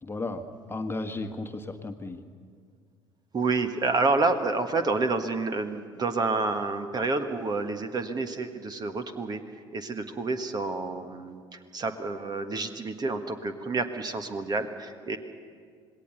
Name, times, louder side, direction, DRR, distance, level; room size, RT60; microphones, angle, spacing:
voice 1, 0.0-2.2, left 2 dB, 15° left, 6 dB, 1.5 m, -34 dB
voice 2, 3.3-9.4 9.7-15.2, right 3 dB, 30° right, 8 dB, 1.5 m, -29 dB
27.0 x 20.0 x 6.9 m, 2.1 s
figure-of-eight pair, 60°, 13 cm